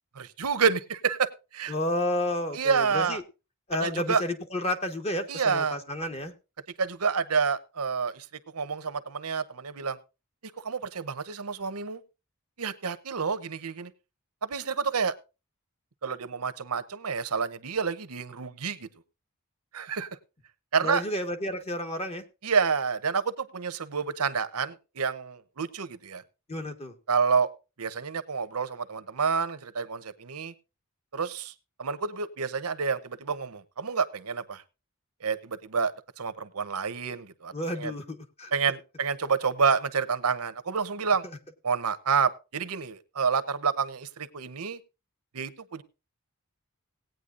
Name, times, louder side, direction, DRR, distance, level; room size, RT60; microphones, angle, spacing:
voice 1, 0.1-1.7 2.5-3.2 3.8-4.2 5.3-5.8 6.8-8.3 8.5-10.0 10.4-12.0 12.6-13.9 14.4-15.1 16.0-18.9 19.7-20.1 20.7-21.0 22.4-26.2 27.1-27.5 27.8-30.5 31.1-31.5 31.8-34.6 35.2-37.9 38.5-41.2 41.6-44.8 45.3-45.8, right 5 dB, 80° right, 13 dB, 0.9 m, -28 dB
voice 2, 1.7-3.2 3.7-6.3 20.8-22.2 26.5-27.0 37.5-38.5, left 1 dB, 30° left, 6 dB, 1.3 m, -31 dB
18.0 x 9.2 x 2.5 m, 0.29 s
head